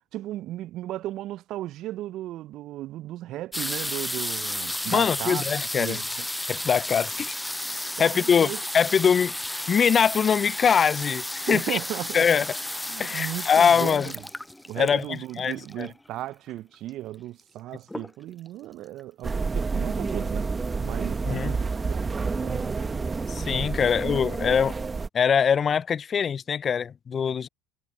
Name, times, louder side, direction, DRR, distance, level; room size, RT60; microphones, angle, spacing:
voice 1, 0.1-5.4 5.8-6.3 8.0-8.6 11.5-12.3 12.9-14.2 14.7-20.5 20.8-22.8, right 14 dB, 55° right, 1.1 m, -36 dB
sound 1, 3.5-16.1 16.9-17.0 17.2-17.6 17.9-18.5 19.0-19.1 19.3-19.4, left 1 dB, 5° left, 0.7 m, -33 dB
voice 2, 4.9-6.0 6.5-7.4 8.0-11.8 12.1-12.5 13.0-14.1 14.8-15.9 21.3-21.6 23.3-24.8 25.1-27.5, left 7 dB, 35° left, 1.2 m, -23 dB
sound 2, 19.2-25.1, right 4 dB, 20° right, 2.0 m, -29 dB
hypercardioid pair, 65°, 0 cm